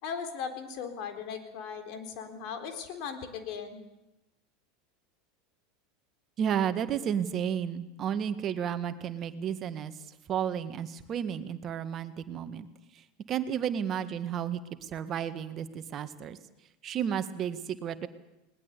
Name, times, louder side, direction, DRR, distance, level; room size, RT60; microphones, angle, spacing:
voice 1, 0.0-3.8, left 6 dB, 55° left, 6 dB, 4.0 m, -38 dB
voice 2, 6.4-12.7 12.9-16.4 16.8-18.1, right 8 dB, 40° right, 10 dB, 1.8 m, -32 dB
20.5 x 19.5 x 8.4 m, 0.97 s
hypercardioid pair, 85°, 0 cm